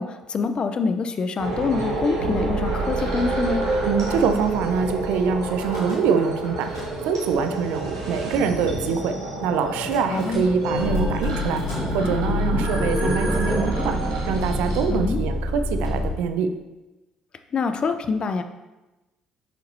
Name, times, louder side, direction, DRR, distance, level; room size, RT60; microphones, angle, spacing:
voice 1, 0.0-3.6 10.1-10.5 14.9-15.2 17.5-18.4, left 4 dB, 40° left, 8 dB, 0.6 m, -25 dB
sound 1, 1.4-14.8, right 2 dB, 85° right, 1.6 m, -28 dB
voice 2, 3.8-6.7 7.0-9.1 9.4-11.6 11.9-14.0 14.3-16.5, right 6 dB, 65° right, 8 dB, 0.6 m, -24 dB
Car / Engine starting / Idling, 5.5-6.3 6.5-7.3 8.0-8.1 8.3-8.4 8.7-8.9 9.9-16.1, left 2 dB, 85° left, 2.5 m, -28 dB
sound 2, 11.7-15.1 15.3-15.4, right 1 dB, ahead, 1.6 m, -30 dB
9.0 x 6.5 x 2.8 m, 1.1 s
figure-of-eight pair, 50°, 2 cm